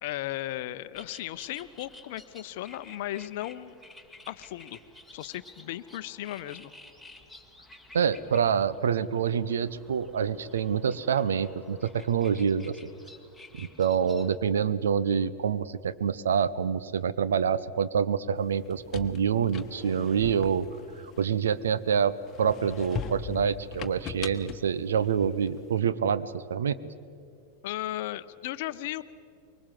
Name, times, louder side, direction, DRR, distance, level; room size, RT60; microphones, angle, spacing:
voice 1, 0.0-3.7 4.3-4.8 5.1-6.7 27.6-29.0, left 14 dB, 50° left, 14 dB, 0.8 m, -36 dB
sound 1, 0.9-14.4, left 2 dB, ahead, 1.8 m, -52 dB
voice 2, 7.9-12.7 13.6-20.7 21.2-22.1 22.4-26.8, right 7 dB, 65° right, 15 dB, 0.8 m, -26 dB
sound 2, 18.5-21.8 22.3-25.7, left 5 dB, 30° left, 1.3 m, -40 dB
24.5 x 23.0 x 7.6 m, 2.5 s
figure-of-eight pair, 90°, 0 cm